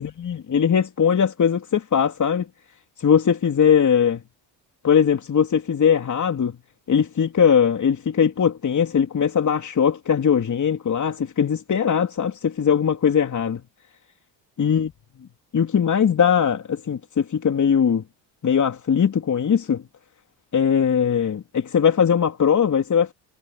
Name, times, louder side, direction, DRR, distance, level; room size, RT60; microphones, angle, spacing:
voice 1, 0.0-2.5 3.0-4.2 4.8-6.6 6.9-13.6 14.6-14.9 15.5-18.0 18.4-19.9 20.5-23.1, left 7 dB, 40° left, 3.6 m, -20 dB
supercardioid pair, 85°, 46 cm